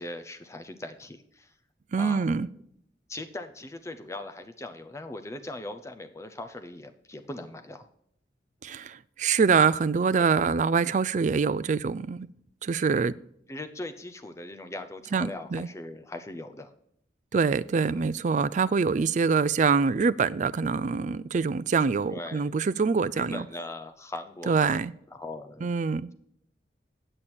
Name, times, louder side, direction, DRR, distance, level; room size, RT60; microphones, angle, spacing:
voice 1, 0.0-1.5 2.0-2.3 3.1-7.8 10.2-10.3 13.5-16.7 17.9-18.1 22.1-22.5 23.1-24.8 25.1-25.7, left 2 dB, 15° left, 7 dB, 0.6 m, -40 dB
voice 2, 1.9-2.5 8.6-12.3 12.6-13.1 15.1-15.7 17.3-23.5 24.5-24.9 25.6-26.1, right 5 dB, 45° right, 17 dB, 0.4 m, -25 dB
8.8 x 8.2 x 4.3 m, 0.71 s
head